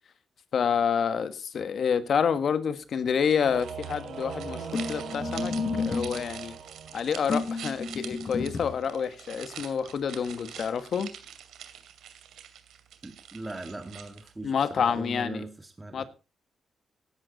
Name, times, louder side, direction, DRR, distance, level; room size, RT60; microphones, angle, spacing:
voice 1, 0.5-6.5 6.9-11.1 14.4-15.4 15.9-16.1, left 7 dB, 60° left, 1.4 m, -28 dB
sound 1, 3.3-14.5, right 9 dB, 90° right, 2.5 m, -45 dB
Singing / Musical instrument, 3.4-7.5, right 6 dB, 65° right, 3.5 m, -39 dB
sound 2, 4.7-6.2 7.3-8.8, left 4 dB, 40° left, 7.4 m, -31 dB
voice 2, 13.0-16.1, right 2 dB, 15° right, 1.8 m, -40 dB
16.5 x 11.5 x 4.0 m
cardioid pair, 105°, 0 cm